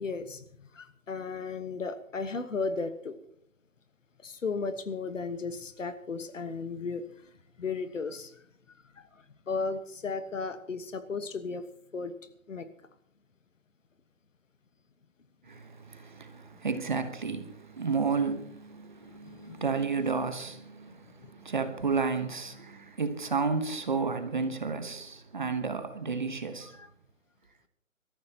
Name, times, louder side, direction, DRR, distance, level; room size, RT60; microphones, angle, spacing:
voice 1, 0.0-3.2 4.2-7.0 7.6-8.4 8.9-11.6 11.9-12.1 12.5-12.7 19.2-19.6 21.2-21.3 26.7-26.9, left 4 dB, 65° left, 1.5 m, -35 dB
voice 2, 15.5-26.7, right 4 dB, 35° right, 1.1 m, -32 dB
23.5 x 14.0 x 2.9 m
hypercardioid pair, 175°, 41 cm